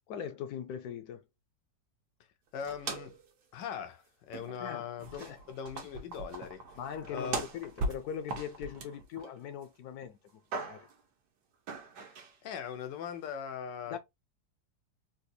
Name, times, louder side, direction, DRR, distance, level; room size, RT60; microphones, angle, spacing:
voice 1, 0.1-1.2 4.6-4.9 5.2-5.4 6.8-10.2 10.6-10.9 13.9-14.0, left 8 dB, 70° left, 1.0 m, -40 dB
voice 2, 2.5-3.2 3.5-6.6 7.1-7.4 12.4-14.0, left 7 dB, 90° left, 1.3 m, -40 dB
Assorted can foley, 2.6-3.3 3.6-3.7 4.3-4.7 5.0-9.6 10.0-11.0 11.7-12.3, right 3 dB, 70° right, 1.3 m, -40 dB
4.0 x 2.3 x 2.6 m
omnidirectional pair, 1.8 m